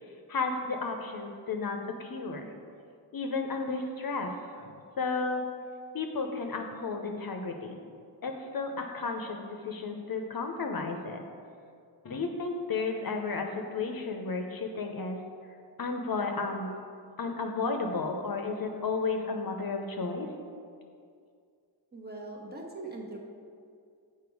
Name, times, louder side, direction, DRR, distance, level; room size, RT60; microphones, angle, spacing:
voice 1, 0.3-2.5 3.1-4.3 4.6-5.4 5.9-7.8 8.2-11.2 12.0-15.2 15.8-16.7 17.2-20.3, left 4 dB, 55° left, 4 dB, 0.7 m, -33 dB
voice 2, 21.9-23.2, right 2 dB, 20° right, -1 dB, 1.1 m, -41 dB
6.9 x 4.5 x 4.7 m, 2.3 s
cardioid pair, 65°, 43 cm